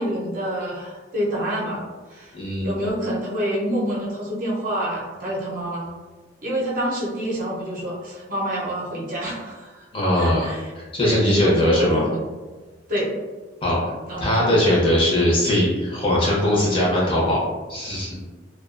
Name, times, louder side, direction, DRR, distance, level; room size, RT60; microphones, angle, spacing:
voice 1, 0.0-1.8 2.1-2.3 2.6-5.9 6.4-9.9 10.2-10.6 11.0-12.2 12.9-13.1 14.1-14.7, equal, 50° right, -4 dB, 0.6 m, -27 dB
voice 2, 2.3-2.7 9.9-10.5 10.8-12.0 13.6-17.4 17.7-18.2, left 1 dB, 30° left, -5 dB, 0.6 m, -20 dB
2.3 x 2.2 x 2.4 m, 1.3 s
head